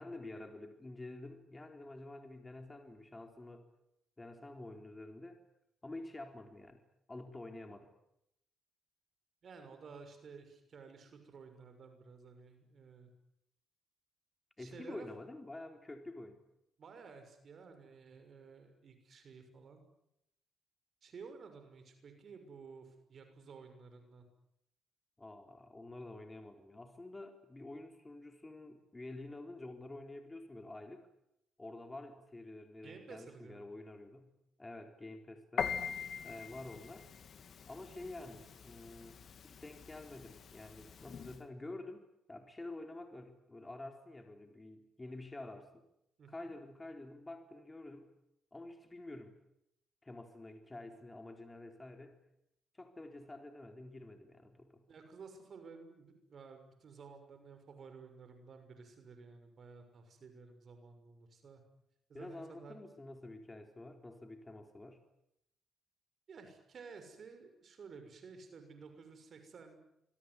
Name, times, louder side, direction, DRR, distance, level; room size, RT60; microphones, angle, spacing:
voice 1, 0.0-3.7 4.2-5.4 5.8-6.8 7.1-7.9 14.6-16.4 25.2-31.1 31.6-34.3 34.6-35.7 36.2-37.1 37.7-45.7 46.3-48.1 48.5-49.4 50.0-52.2 52.7-54.8 62.1-65.0, left 2 dB, 20° left, 5 dB, 4.1 m, -49 dB
voice 2, 9.4-13.1 14.6-15.1 16.8-19.8 21.0-24.2 32.8-33.6 46.2-46.5 54.9-61.6 62.1-62.8 66.3-69.8, right 5 dB, 50° right, 7 dB, 6.4 m, -53 dB
Piano, 35.6-41.4, left 7 dB, 55° left, 2.8 m, -43 dB
26.5 x 22.5 x 9.8 m, 0.80 s
cardioid pair, 90°, 0 cm